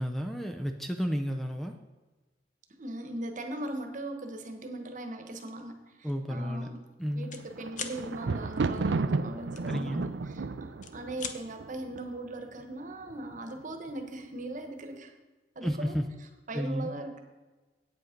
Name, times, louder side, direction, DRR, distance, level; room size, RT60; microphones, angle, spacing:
voice 1, 0.0-1.8 6.0-6.7 7.0-7.3 9.7-10.0 15.6-16.1 16.5-16.9, equal, ahead, 5 dB, 0.5 m, -32 dB
voice 2, 2.8-6.8 7.1-15.1 15.5-15.9 16.5-17.2, right 1 dB, 45° right, 5 dB, 1.2 m, -39 dB
sound 1, 5.4-5.6 6.1-6.3 6.5-7.4 7.7-8.0 9.6-10.3 10.7-11.4, left 7 dB, 45° left, 0.8 m, -40 dB
Thunder, 7.2-12.4 13.1-13.6 13.9-14.0, right 3 dB, 80° right, 0.5 m, -33 dB
8.6 x 8.3 x 5.2 m, 1.2 s
head